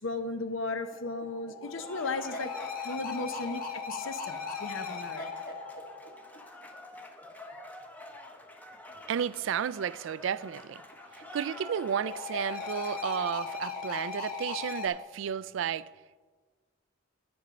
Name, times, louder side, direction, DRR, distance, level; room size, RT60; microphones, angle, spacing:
voice 1, 0.0-2.5 2.8-5.3, left 3 dB, 70° left, 0.8 m, -36 dB
sound 1, 0.8-7.0 10.6-14.9, left 5 dB, 45° left, 1.2 m, -39 dB
Cheering / Applause, 1.7-14.3, left 1 dB, 10° left, 0.7 m, -49 dB
voice 2, 9.1-10.8 11.3-15.9, right 8 dB, 65° right, 0.3 m, -32 dB
9.8 x 9.4 x 5.1 m
head